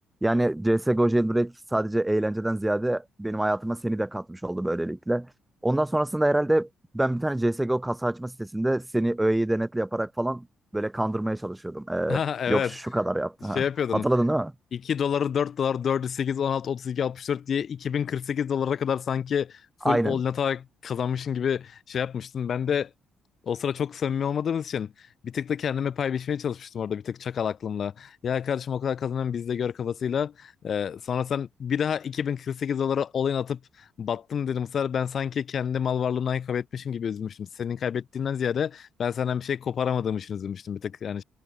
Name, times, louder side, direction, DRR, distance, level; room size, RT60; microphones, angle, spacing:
voice 1, 0.2-5.3 5.6-6.7 6.9-10.5 10.7-12.2 12.5-13.6 13.9-14.5 19.8-20.2, right 1 dB, 10° right, 1.4 m, -25 dB
voice 2, 12.1-12.7 13.5-14.0 14.8-22.9 23.4-24.9 25.2-33.6 34.0-41.2, left 8 dB, 55° left, 1.6 m, -28 dB
supercardioid pair, 60°, 0 cm